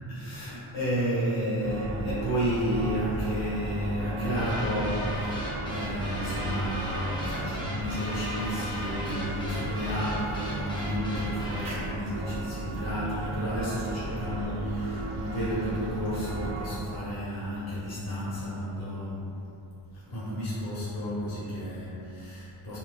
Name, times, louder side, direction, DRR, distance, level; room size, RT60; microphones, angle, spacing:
voice 1, 0.1-19.2 19.9-22.8, equal, 45° left, -10 dB, 1.4 m, -32 dB
sound 1, 1.6-16.8, right 2 dB, 35° right, 0.7 m, -36 dB
sound 2, 4.4-11.8, equal, 10° left, 0.6 m, -36 dB
4.5 x 3.8 x 2.4 m, 2.8 s
cardioid pair, 150°, 48 cm